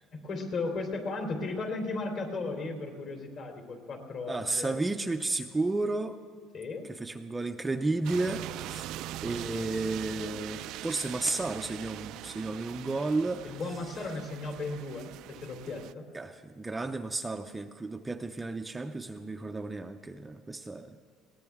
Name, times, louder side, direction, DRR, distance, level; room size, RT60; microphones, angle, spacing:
voice 1, 0.1-4.7 6.5-6.9 12.7-12.9 13.4-16.1, left 3 dB, 45° left, 3 dB, 3.2 m, -36 dB
voice 2, 4.3-6.2 7.0-8.9 9.2-13.4 16.1-21.0, right 2 dB, 10° right, 6 dB, 0.5 m, -32 dB
sound 1, 8.0-15.9, right 14 dB, 65° right, 0.4 m, -42 dB
21.5 x 18.0 x 3.6 m, 2.2 s
cardioid pair, 130°, 0 cm